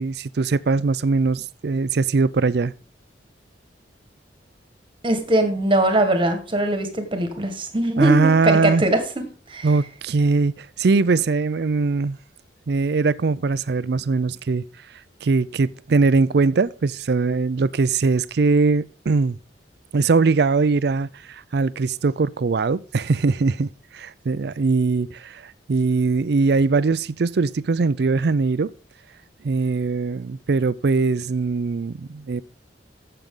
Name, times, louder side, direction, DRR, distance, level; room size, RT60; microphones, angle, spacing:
voice 1, 0.0-2.7 8.0-8.8 9.6-12.2 12.7-14.6 15.2-19.4 19.9-23.7 23.9-28.7 29.4-32.4, right 4 dB, 60° right, 0.4 m, -21 dB
voice 2, 5.0-9.0 9.5-9.7, right 1 dB, 30° right, 1.6 m, -21 dB
14.5 x 6.7 x 3.8 m
head